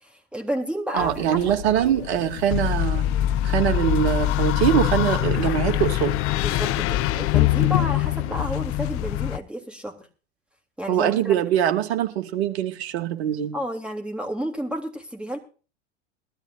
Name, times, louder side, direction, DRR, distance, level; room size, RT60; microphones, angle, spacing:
voice 1, 0.0-1.6 6.4-10.1 10.8-11.4 13.5-15.4, equal, 5° right, 4 dB, 3.3 m, -31 dB
voice 2, 0.9-3.0 3.4-6.1 10.9-13.5, right 11 dB, 65° right, 5 dB, 2.4 m, -23 dB
sound 1, 1.0-8.5, left 12 dB, 70° left, 1.2 m, -33 dB
sound 2, 2.5-9.4, left 13 dB, 40° left, 0.8 m, -23 dB
21.5 x 13.0 x 2.6 m, 0.37 s
hypercardioid pair, 95°, 34 cm